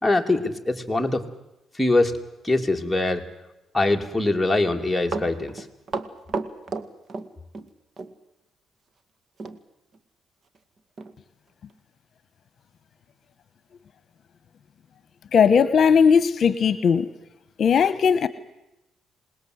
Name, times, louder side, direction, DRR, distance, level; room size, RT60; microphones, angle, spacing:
voice 1, 0.0-1.2 1.7-2.2 2.4-3.2 3.7-5.6, left 2 dB, 5° left, 1 dB, 2.9 m, -23 dB
Run, 5.1-7.7 8.0-8.1 9.4-9.6 9.9-10.0 10.5-10.6 11.0-11.1 11.7-11.8, right 4 dB, 45° right, 1.9 m, -32 dB
voice 2, 15.3-17.1 17.6-18.3, left 6 dB, 55° left, 14 dB, 1.1 m, -18 dB
27.0 x 20.0 x 8.0 m, 0.92 s
cardioid pair, 90°, 0 cm